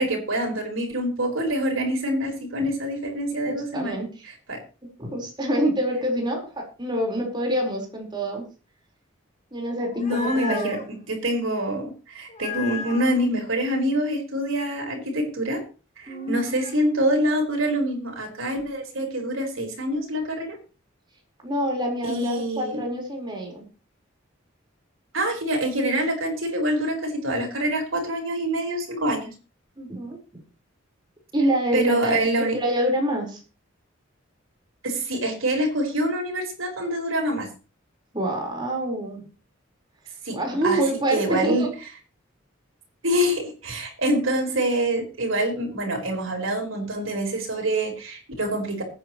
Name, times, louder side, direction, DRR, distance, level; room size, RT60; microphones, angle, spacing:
voice 1, 0.0-4.0 4.5-4.6 10.0-15.6 16.0-20.6 22.0-22.8 25.1-29.3 31.7-32.6 34.8-37.5 40.2-40.4 40.6-40.8 41.1-41.7 43.0-48.8, right 1 dB, 80° right, 2 dB, 4.6 m, -25 dB
voice 2, 3.4-4.1 5.0-8.4 9.5-10.8 16.1-16.5 21.4-23.6 29.8-30.4 31.3-33.4 38.1-39.2 40.3-41.7, right 1 dB, 25° right, 0 dB, 4.4 m, -26 dB
sound 1, 9.7-10.9 12.3-13.2 16.1-16.8, left 7 dB, 35° left, 1.7 m, -36 dB
20.5 x 9.5 x 3.1 m, 0.33 s
head